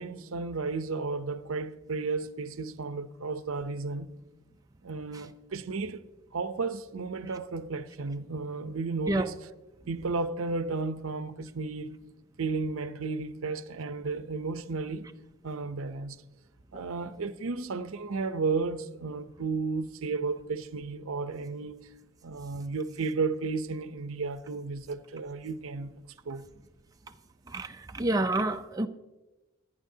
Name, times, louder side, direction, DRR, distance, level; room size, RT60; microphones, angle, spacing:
voice 1, 0.0-4.1 4.8-6.0 6.3-9.4 9.9-11.9 12.4-15.1 15.4-16.2 16.7-21.8 22.2-25.9 26.2-26.5, right 4 dB, 75° right, 0.7 m, -33 dB
voice 2, 27.5-28.9, right 2 dB, 15° right, 0.4 m, -28 dB
25.0 x 9.8 x 2.8 m
head